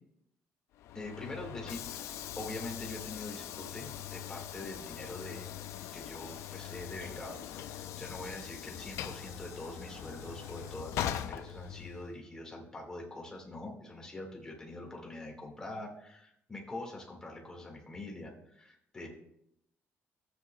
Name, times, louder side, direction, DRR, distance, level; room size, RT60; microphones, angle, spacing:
Train / Sliding door, 0.7-12.2, left 11 dB, 80° left, 0.5 m, -41 dB
voice 1, 0.9-5.6 5.9-19.1, left 2 dB, 15° left, -1 dB, 1.8 m, -44 dB
sound 1, 5.7-10.8, right 5 dB, 35° right, 0.8 m, -60 dB
13.5 x 8.0 x 2.2 m, 0.75 s
cardioid pair, 165°, 5 cm